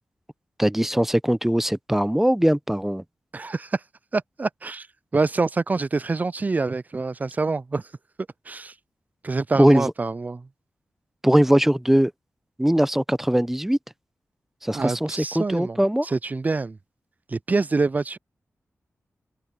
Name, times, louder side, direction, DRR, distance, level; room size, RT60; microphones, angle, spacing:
voice 1, 0.6-3.0 9.6-9.9 11.2-12.1 12.6-13.8 14.6-16.1, right 1 dB, 5° right, 0.7 m, -20 dB
voice 2, 3.3-3.8 4.1-4.9 5.1-7.9 8.5-8.7 9.2-10.5 14.7-16.8 17.3-18.2, right 3 dB, 30° right, 0.3 m, -26 dB
open air
cardioid pair, 70°, 5 cm